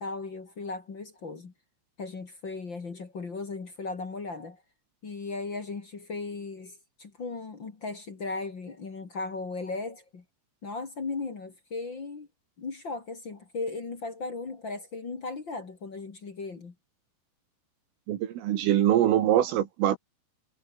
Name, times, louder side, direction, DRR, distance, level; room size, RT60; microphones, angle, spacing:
voice 1, 0.0-1.5 2.0-4.6 5.0-10.2 10.6-12.3 12.6-16.7, left 3 dB, 40° left, 1.8 m, -37 dB
voice 2, 18.1-20.0, right 12 dB, 75° right, 4.5 m, -23 dB
omnidirectional pair, 5.9 m